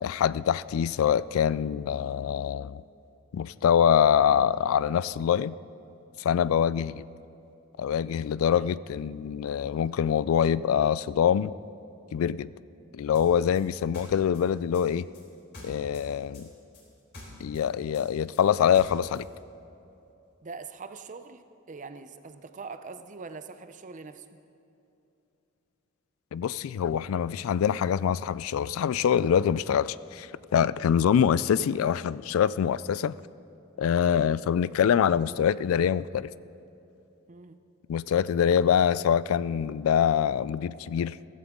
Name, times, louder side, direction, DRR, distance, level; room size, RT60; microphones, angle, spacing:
voice 1, 0.0-2.8 3.3-5.6 6.2-7.0 7.8-11.5 12.1-12.5 12.9-15.1 15.6-16.5 17.4-19.3 26.3-33.1 33.8-36.3 37.9-41.2, left 8 dB, 80° left, 19 dB, 0.3 m, -24 dB
sound 1, 13.1-16.1 16.3-19.3, left 1 dB, 55° left, 3.9 m, -46 dB
voice 2, 20.4-24.4 37.3-37.6, right 4 dB, 40° right, 10 dB, 0.6 m, -43 dB
15.5 x 15.0 x 3.7 m, 2.8 s
head